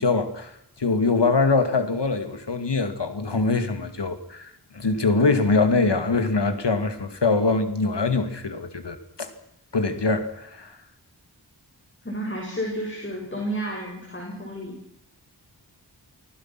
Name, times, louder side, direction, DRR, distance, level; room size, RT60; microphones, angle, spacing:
voice 1, 0.0-9.3 9.7-10.8, left 3 dB, 75° left, 8 dB, 2.5 m, -23 dB
voice 2, 12.0-14.7, right 1 dB, 25° left, -1 dB, 7.0 m, -31 dB
29.0 x 20.0 x 6.2 m, 0.76 s
wide cardioid pair, 70°, 42 cm